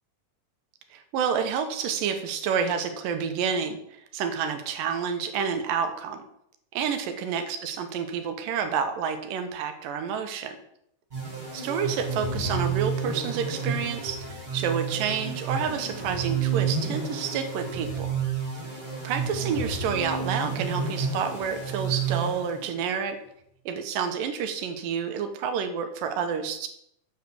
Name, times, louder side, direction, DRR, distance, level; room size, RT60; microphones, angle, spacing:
voice 1, 0.9-3.8 4.1-6.2 6.7-10.6 11.5-18.1 19.0-23.2 23.7-26.7, right 7 dB, 85° right, 7 dB, 2.6 m, -29 dB
sound 1, 11.1-22.9, right 5 dB, 15° right, 3.0 m, -30 dB
7.9 x 4.9 x 6.8 m, 0.73 s
omnidirectional pair, 3.8 m